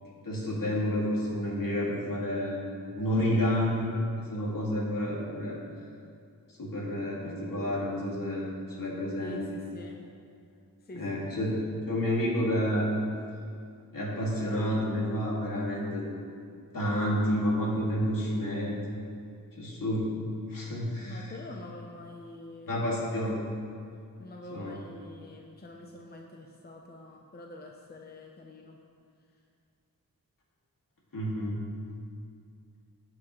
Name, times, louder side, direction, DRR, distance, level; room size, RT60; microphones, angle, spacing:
voice 1, 0.2-2.7 2.9-3.9 4.2-5.6 6.6-8.5 8.8-9.5 10.9-11.5 11.9-12.9 13.9-16.0 16.7-18.7 19.6-20.2 20.5-21.3 22.7-23.4 24.5-24.8 31.1-31.6, equal, 70° left, -4 dB, 2.5 m, -29 dB
voice 2, 9.2-10.0 10.8-11.2 11.5-11.8 21.0-22.7 24.2-28.8, left 2 dB, 30° left, 0 dB, 0.8 m, -46 dB
18.0 x 6.1 x 3.2 m, 2.4 s
wide cardioid pair, 90°, 35 cm